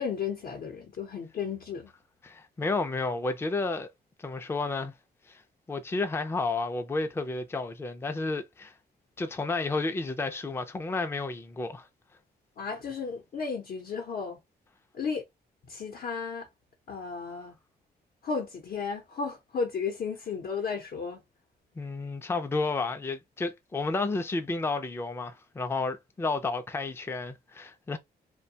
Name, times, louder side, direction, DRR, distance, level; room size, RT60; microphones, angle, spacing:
voice 1, 0.0-1.9 12.6-14.4 14.9-15.2 15.6-16.5 16.9-17.6 18.2-21.2, left 5 dB, 60° left, 0.7 m, -34 dB
voice 2, 2.2-3.9 4.2-4.9 5.3-5.4 5.7-8.7 9.2-11.9 21.8-28.0, left 3 dB, 15° left, 0.4 m, -31 dB
2.5 x 2.2 x 2.7 m
cardioid pair, 105°, 17 cm